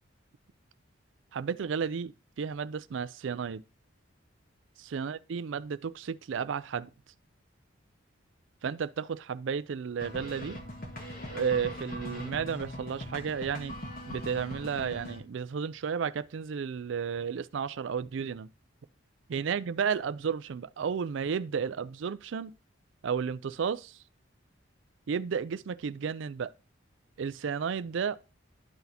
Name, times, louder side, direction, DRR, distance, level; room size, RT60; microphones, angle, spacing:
voice 1, 1.3-3.6 4.8-6.9 8.6-10.6 11.3-13.8 14.1-18.5 19.3-22.5 23.0-24.0 25.1-26.5 27.2-28.2, right 6 dB, 65° right, 0.4 m, -33 dB
sound 1, 10.0-15.2, equal, 45° left, 1.5 m, -41 dB
12.0 x 4.0 x 2.7 m
head